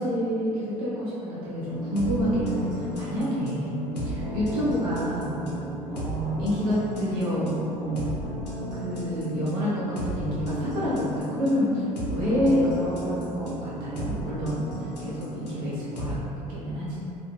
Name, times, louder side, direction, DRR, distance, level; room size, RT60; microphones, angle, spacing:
voice 1, 0.0-5.4 5.9-8.0 8.8-11.8 12.1-14.7 15.0-17.0, equal, 65° right, -8 dB, 0.8 m, -28 dB
sound 1, 1.6-16.1, equal, 80° left, 0.5 m, -34 dB
2.9 x 2.3 x 2.3 m, 2.8 s
figure-of-eight pair, 60°, 21 cm